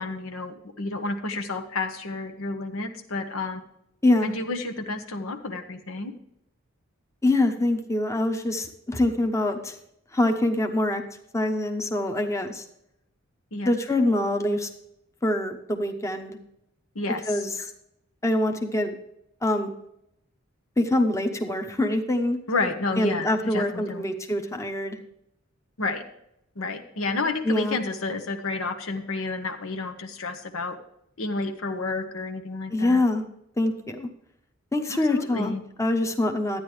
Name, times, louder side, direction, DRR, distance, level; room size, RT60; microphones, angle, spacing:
voice 1, 0.0-3.6 4.2-6.1 13.5-13.7 16.9-17.2 22.5-24.0 25.8-26.0 26.6-30.8 31.2-33.0 34.9-35.6, left 3 dB, 85° left, 6 dB, 1.2 m, -30 dB
voice 2, 4.0-4.3 7.2-9.8 10.1-11.0 11.3-12.6 13.6-14.7 15.2-16.4 17.3-17.7 18.2-19.0 19.4-19.7 20.8-22.4 23.0-25.0 27.4-27.8 32.7-33.2 33.6-34.1 34.7-36.6, left 1 dB, 15° left, 5 dB, 0.9 m, -24 dB
12.0 x 9.4 x 3.2 m, 0.78 s
head